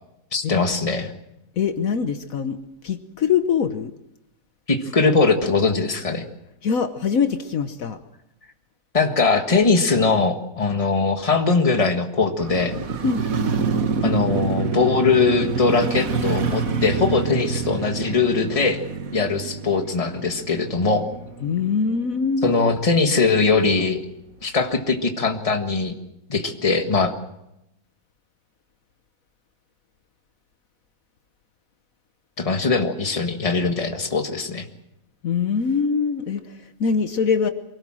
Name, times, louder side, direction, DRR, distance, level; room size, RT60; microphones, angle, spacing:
voice 1, 0.3-1.1 4.7-6.2 8.9-12.7 14.0-18.8 19.1-21.1 22.4-24.0 24.4-25.9 26.3-27.1 32.4-34.6, left 4 dB, 25° left, 5 dB, 1.6 m, -21 dB
voice 2, 1.6-2.6 2.8-3.9 6.6-8.0 13.0-13.3 21.4-22.5 35.2-37.5, left 6 dB, 65° left, 8 dB, 1.4 m, -23 dB
Motorcycle, 12.4-22.5 22.8-22.9, right 5 dB, 65° right, 1.7 m, -27 dB
24.0 x 17.5 x 7.6 m, 0.87 s
omnidirectional pair, 1.6 m